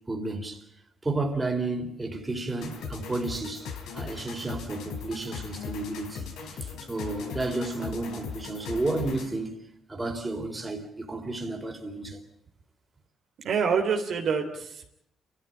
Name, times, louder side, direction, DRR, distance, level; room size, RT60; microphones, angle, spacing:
voice 1, 0.1-0.6 1.0-9.5 9.9-12.2, right 2 dB, 20° right, 3.9 m, -32 dB
sound 1, 2.6-9.4, left 6 dB, 85° left, 3.8 m, -39 dB
voice 2, 13.4-14.9, right 6 dB, 65° right, 3.2 m, -26 dB
29.0 x 13.5 x 9.0 m
cardioid pair, 90°, 0 cm